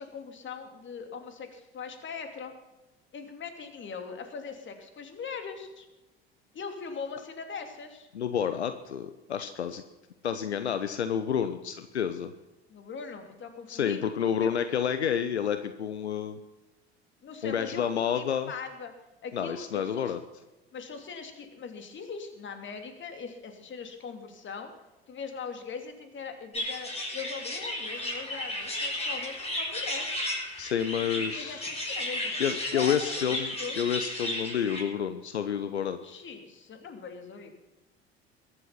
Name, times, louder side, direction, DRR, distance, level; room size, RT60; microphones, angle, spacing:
voice 1, 0.0-2.5 3.1-5.9 6.5-8.1 12.7-14.0 14.4-14.5 17.2-17.8 18.1-18.9 19.2-20.1 20.7-24.7 25.1-30.1 31.2-32.4 32.7-33.8 36.0-37.5, left 5 dB, 35° left, 6 dB, 2.9 m, -40 dB
voice 2, 8.1-9.8 10.2-12.3 13.7-16.4 17.4-18.5 19.3-20.2 30.6-31.7 32.4-36.0, left 8 dB, 80° left, 10 dB, 0.8 m, -29 dB
sound 1, 26.5-34.8, left 1 dB, 20° left, 5.8 m, -34 dB
22.0 x 8.1 x 5.8 m, 1.1 s
figure-of-eight pair, 65°, 32 cm